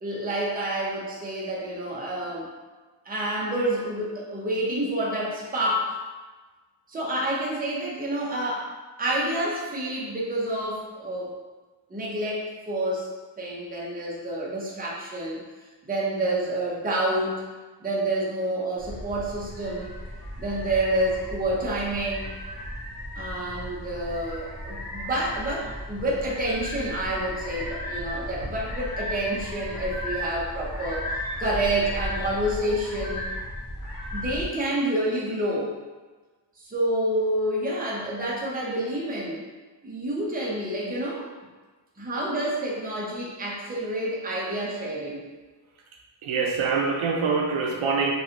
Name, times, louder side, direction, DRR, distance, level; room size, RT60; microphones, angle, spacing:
voice 1, 0.0-2.5 3.1-6.0 6.9-11.3 11.9-15.4 15.8-17.4 17.8-19.9 20.4-22.4 23.2-33.2 34.1-35.7 36.6-39.5 39.8-41.3 42.0-45.2, right 1 dB, 20° right, -5 dB, 0.6 m, -28 dB
sound 1, 18.8-34.4, equal, 50° left, 1.1 m, -35 dB
voice 2, 46.2-48.1, right 4 dB, 85° right, 1 dB, 0.5 m, -24 dB
3.1 x 2.6 x 2.5 m, 1.3 s
wide cardioid pair, 120°, 48 cm